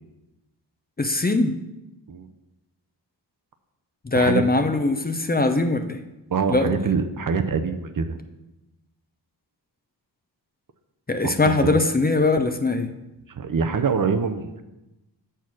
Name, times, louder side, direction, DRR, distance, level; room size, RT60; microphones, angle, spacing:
voice 1, 1.0-1.6 4.0-6.0 6.5-6.9 11.1-12.9, left 2 dB, 20° left, 7 dB, 0.6 m, -21 dB
voice 2, 6.3-8.2 11.6-11.8 13.4-14.6, right 5 dB, 50° right, 8 dB, 0.7 m, -24 dB
6.9 x 4.5 x 6.1 m, 0.98 s
cardioid pair, 60°, 44 cm